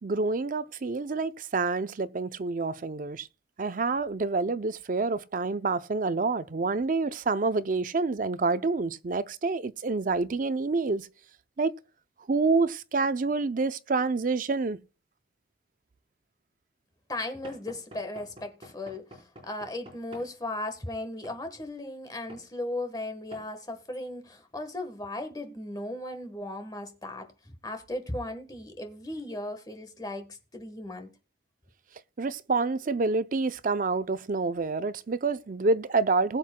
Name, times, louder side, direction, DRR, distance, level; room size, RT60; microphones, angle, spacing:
voice 1, 0.0-3.3 3.6-11.1 11.6-11.7 12.3-14.8 32.2-36.4, right 3 dB, 50° right, 0.5 m, -27 dB
voice 2, 17.1-31.1, left 1 dB, 20° left, 1.3 m, -37 dB
Knock / Wood, 17.4-20.3 21.2-21.4 22.3-22.5 23.3-23.5, equal, 30° right, 4.4 m, -49 dB
20.5 x 7.4 x 2.2 m
head